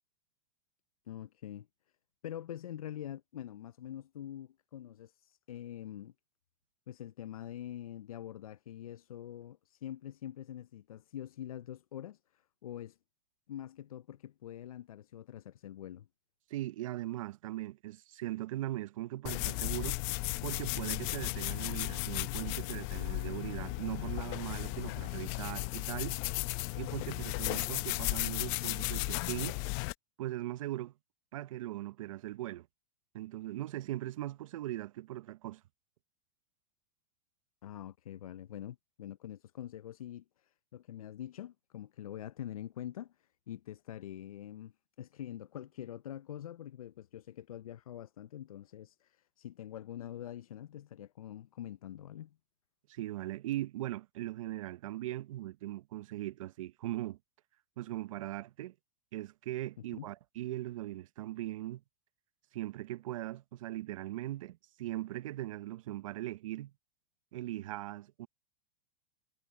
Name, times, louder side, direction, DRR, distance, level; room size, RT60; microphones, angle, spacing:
voice 1, 1.1-1.7 2.2-6.1 6.9-13.0 13.5-16.1 37.6-44.7 45.0-52.4 59.9-60.1, left 11 dB, 85° left, 0.6 m, -45 dB
voice 2, 16.5-20.0 20.4-26.2 26.8-29.6 30.2-30.9 31.3-32.7 33.1-35.6 52.9-57.2 57.8-58.7 59.1-61.8 62.5-66.7 67.3-68.3, right 15 dB, 70° right, 1.0 m, -39 dB
sound 1, 19.3-29.9, left 27 dB, 50° left, 0.8 m, -35 dB
hypercardioid pair, 105°, 18 cm